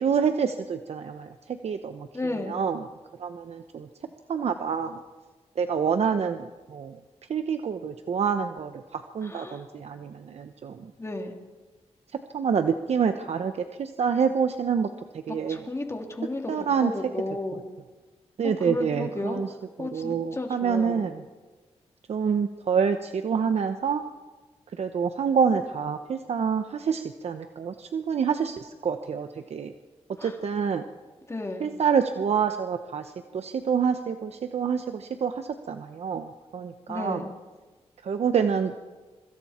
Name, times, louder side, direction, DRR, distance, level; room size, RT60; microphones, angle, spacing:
voice 1, 0.0-2.1 2.5-2.8 3.2-3.9 4.3-5.0 5.6-7.0 7.3-10.9 12.3-14.9 15.1-15.6 16.5-16.9 18.4-19.5 19.8-21.2 22.1-24.0 24.8-29.7 30.2-30.8 31.6-37.2 38.0-38.8, right 6 dB, 70° right, 7 dB, 1.0 m, -27 dB
voice 2, 2.1-2.6 9.2-9.6 11.0-11.3 15.3-17.6 18.4-19.4 19.8-21.1 30.2-30.4 31.3-31.7 36.9-37.3, left 2 dB, 25° left, 2 dB, 3.2 m, -33 dB
26.0 x 24.0 x 4.4 m, 1.3 s
wide cardioid pair, 100°, 11 cm